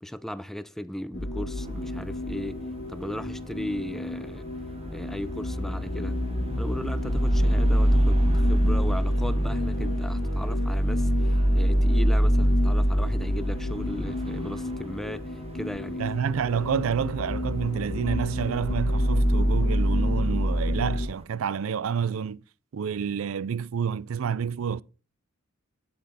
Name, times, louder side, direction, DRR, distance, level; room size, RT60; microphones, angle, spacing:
voice 1, 0.0-2.6 2.9-4.5 4.9-6.2 6.6-16.0, equal, ahead, 0.5 m, -36 dB
sound 1, 1.1-21.1, equal, 60° left, 1.5 m, -25 dB
sound 2, 1.5-21.2, right 1 dB, 30° right, 0.9 m, -43 dB
voice 2, 16.0-22.4 22.7-24.8, right 7 dB, 75° right, 0.4 m, -29 dB
9.6 x 8.4 x 4.1 m
head